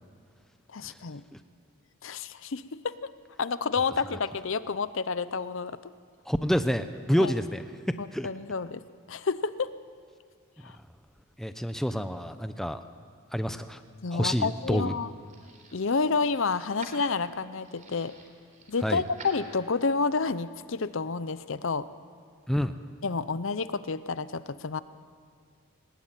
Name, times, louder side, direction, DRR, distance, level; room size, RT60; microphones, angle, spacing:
voice 1, 0.7-1.2 2.0-3.0 3.4-5.9 7.2-7.3 8.0-8.8 9.1-9.7 10.6-10.8 14.0-15.1 15.7-18.1 18.7-21.9 23.0-24.8, left 4 dB, 60° left, 14 dB, 0.7 m, -29 dB
voice 2, 6.3-8.3 11.4-12.8 13.3-13.8 14.1-14.9 18.8-19.0 22.5-22.8, equal, ahead, 9 dB, 0.7 m, -28 dB
sound 1, 14.0-20.0, right 3 dB, 35° right, 3.8 m, -51 dB
21.0 x 20.0 x 9.1 m, 2.2 s
head